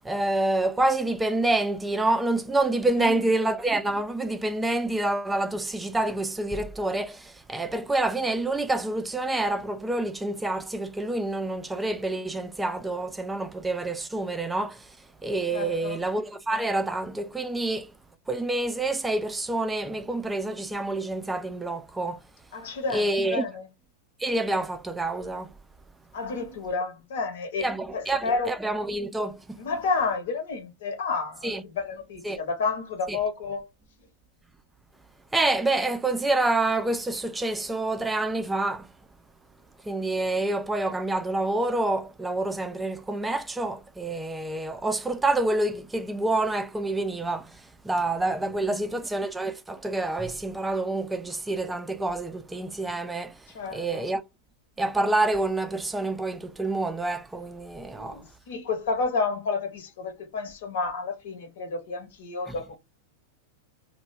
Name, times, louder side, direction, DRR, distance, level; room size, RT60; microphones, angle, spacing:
voice 1, 0.0-15.0 15.2-17.9 18.3-22.2 22.9-23.4 24.2-25.5 27.6-29.6 31.4-31.6 32.2-32.4 33.1-33.2 35.3-38.9 39.8-53.4 53.7-54.2 54.8-58.2 62.5-62.6, right 2 dB, 10° right, 0.4 m, -27 dB
voice 2, 15.5-16.0 22.5-23.7 26.1-28.5 29.6-33.7 48.6-49.0 53.5-54.1 57.9-62.8, left 4 dB, 55° left, 1.0 m, -31 dB
2.2 x 2.1 x 3.3 m
figure-of-eight pair, 90°, 0 cm